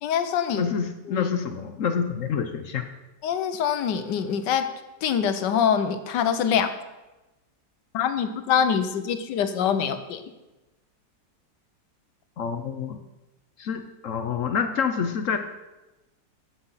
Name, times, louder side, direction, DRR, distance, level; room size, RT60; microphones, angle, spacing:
voice 1, 0.0-0.7 1.1-1.3 3.2-4.7 5.0-6.7 7.9-10.2, left 8 dB, 80° left, 9 dB, 1.5 m, -24 dB
voice 2, 0.5-2.8 12.4-13.0 13.6-15.4, left 6 dB, 60° left, 8 dB, 0.9 m, -27 dB
10.0 x 7.8 x 5.6 m, 1.1 s
omnidirectional pair, 1.9 m